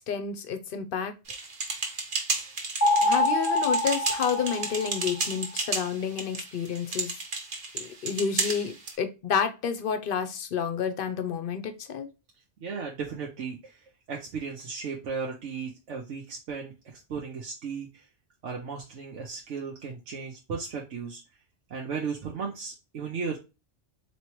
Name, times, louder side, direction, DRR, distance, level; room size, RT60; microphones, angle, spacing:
voice 1, 0.1-1.1 3.0-7.2 7.7-12.1, left 7 dB, 55° left, 9 dB, 0.8 m, -30 dB
sound 1, 1.3-9.0, right 3 dB, 55° right, 1.2 m, -33 dB
sound 2, 2.8-5.3, left 1 dB, 25° left, 0.4 m, -25 dB
voice 2, 12.6-13.8 14.1-18.0 18.4-21.2 21.7-23.4, right 5 dB, 75° right, 0 dB, 1.1 m, -35 dB
4.2 x 3.1 x 2.9 m, 0.28 s
omnidirectional pair, 1.3 m